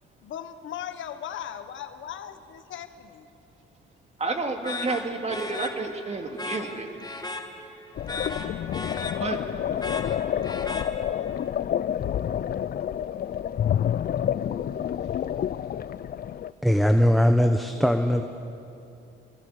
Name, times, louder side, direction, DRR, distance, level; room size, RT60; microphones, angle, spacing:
voice 1, 0.2-3.3, left 9 dB, 75° left, 9 dB, 1.4 m, -38 dB
voice 2, 4.2-6.9 9.2-9.4, right 3 dB, 35° right, 4 dB, 2.6 m, -30 dB
sound 1, 4.6-11.4, left 2 dB, 20° left, 1.9 m, -37 dB
sound 2, 8.0-16.5, left 9 dB, 50° left, 0.5 m, -28 dB
voice 3, 16.6-18.2, equal, ahead, 5 dB, 1.2 m, -20 dB
28.0 x 22.0 x 6.7 m, 2.7 s
cardioid pair, 90°, 20 cm